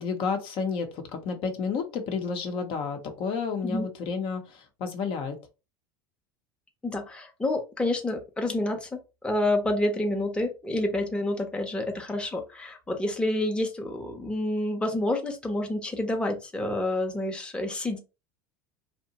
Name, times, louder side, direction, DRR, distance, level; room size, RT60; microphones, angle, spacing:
voice 1, 0.0-5.4, left 5 dB, 55° left, 5 dB, 0.7 m, -31 dB
voice 2, 6.8-18.0, left 1 dB, 10° left, 3 dB, 0.7 m, -28 dB
2.7 x 2.1 x 2.8 m, 0.28 s
hypercardioid pair, 85°, 11 cm